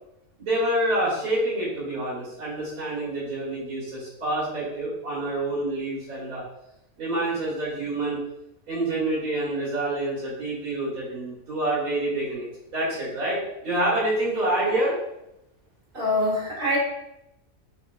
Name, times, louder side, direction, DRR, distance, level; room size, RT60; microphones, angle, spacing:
voice 1, 0.4-6.4 7.0-8.2 8.7-14.9, right 1 dB, 80° right, -9 dB, 2.2 m, -27 dB
voice 2, 15.9-16.8, left 1 dB, 40° right, -5 dB, 1.4 m, -24 dB
5.7 x 2.6 x 2.2 m, 0.85 s
omnidirectional pair, 1.5 m